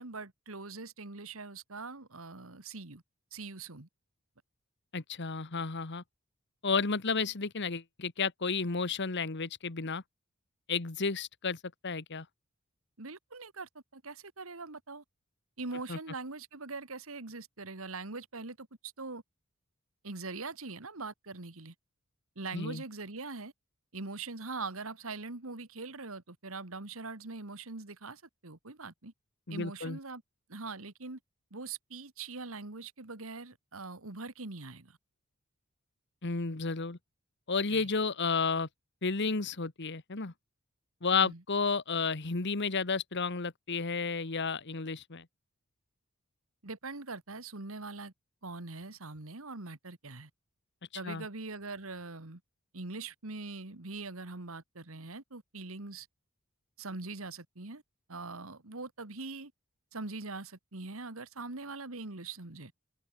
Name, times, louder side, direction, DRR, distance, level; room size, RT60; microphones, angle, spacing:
voice 1, 0.0-3.0 3.3-3.9 13.0-15.0 15.6-19.2 20.0-21.7 22.4-23.5 23.9-29.1 29.5-30.2 30.5-31.2 31.5-35.0 37.7-37.9 41.1-41.4 46.6-48.1 48.4-50.3 50.9-52.4 52.7-56.1 56.8-57.8 58.1-59.5 59.9-62.7, right 3 dB, 75° right, 2.0 m, -42 dB
voice 2, 4.9-6.0 6.6-10.0 10.7-12.2 15.9-16.0 22.5-22.8 29.5-30.0 36.2-37.0 37.5-38.7 39.0-40.3 41.0-45.2 51.0-51.2, left 4 dB, 55° left, 1.4 m, -32 dB
head